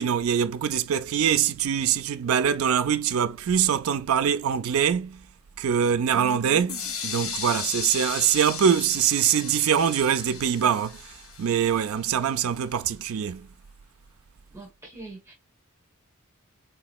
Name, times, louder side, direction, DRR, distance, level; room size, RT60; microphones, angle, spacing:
voice 1, 0.0-5.2 5.6-6.8 7.0-11.0 11.4-13.5, right 8 dB, 75° right, 0.4 m, -23 dB
sound 1, 6.7-12.5, left 6 dB, 75° left, 0.8 m, -36 dB
voice 2, 14.5-15.3, right 3 dB, 10° right, 1.1 m, -42 dB
3.6 x 2.9 x 2.4 m
head